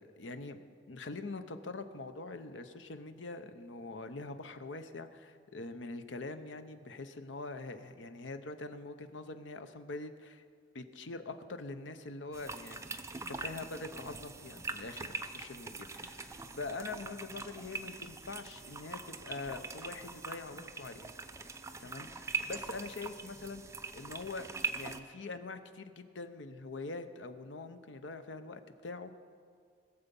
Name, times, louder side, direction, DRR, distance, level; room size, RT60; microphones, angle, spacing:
voice 1, 0.0-10.4 10.7-12.9 13.3-21.1 21.8-24.5 24.7-29.2, left 3 dB, 85° left, 9 dB, 0.8 m, -44 dB
sound 1, 12.3-25.0, right 4 dB, 15° right, 0.5 m, -42 dB
21.0 x 7.0 x 5.4 m, 2.2 s
head